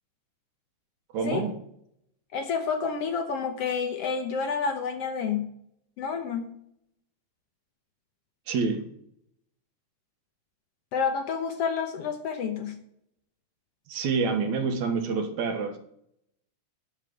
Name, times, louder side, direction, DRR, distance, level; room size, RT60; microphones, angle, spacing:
voice 1, 1.1-1.5 8.5-8.8 13.9-15.8, right 5 dB, 70° right, 6 dB, 2.6 m, -27 dB
voice 2, 2.3-5.5 6.0-6.5 10.9-12.8, left 6 dB, 65° left, 6 dB, 1.7 m, -29 dB
10.5 x 4.9 x 7.8 m, 0.70 s
omnidirectional pair, 3.4 m